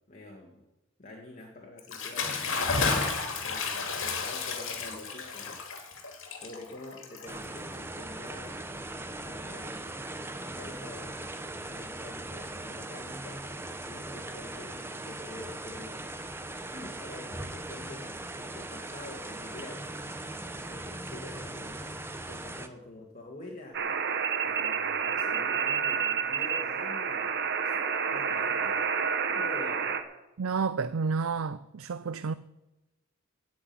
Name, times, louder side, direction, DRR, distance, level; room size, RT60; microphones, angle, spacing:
voice 1, 0.1-0.6 1.0-2.8 3.4-6.0 6.3-8.6 9.0-10.0 10.3-11.2 11.5-13.4 13.9-16.2 16.7-22.0 22.3-23.9 24.4-27.3 27.6-27.8 28.1-28.8 29.3-30.0, left 2 dB, 35° left, 2.1 m, -47 dB
Bathtub (filling or washing) / Splash splatter, 1.8-7.7, left 4 dB, 60° left, 2.4 m, -32 dB
sound 1, 7.3-22.7, right 2 dB, 10° right, 0.8 m, -39 dB
sound 2, 23.7-30.0, right 6 dB, 50° right, 1.3 m, -29 dB
voice 2, 30.4-32.3, right 5 dB, 65° right, 0.5 m, -30 dB
16.5 x 6.3 x 9.5 m
head